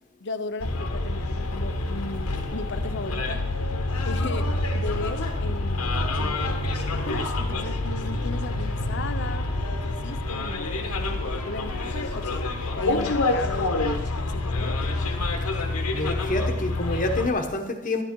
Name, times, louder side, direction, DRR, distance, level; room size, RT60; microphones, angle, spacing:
voice 1, 0.2-3.4 4.0-12.5 12.8-14.8, left 3 dB, 55° left, 10 dB, 0.7 m, -36 dB
Bus, 0.6-17.3, left 2 dB, 85° left, 1.3 m, -27 dB
voice 2, 15.9-18.0, left 2 dB, 35° left, 5 dB, 1.2 m, -27 dB
11.5 x 11.0 x 4.6 m, 0.98 s
head